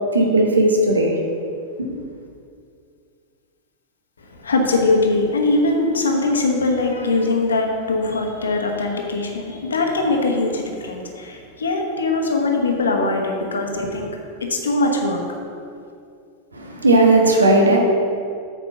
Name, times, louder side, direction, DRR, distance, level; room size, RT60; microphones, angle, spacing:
voice 1, 0.1-1.1 1.8-2.0 16.5-17.8, right 2 dB, 75° right, 1 dB, 1.1 m, -16 dB
voice 2, 4.2-14.1 14.4-15.3, left 2 dB, 70° left, 2 dB, 1.1 m, -21 dB
8.4 x 5.0 x 5.9 m, 2.4 s
figure-of-eight pair, 90°, 0 cm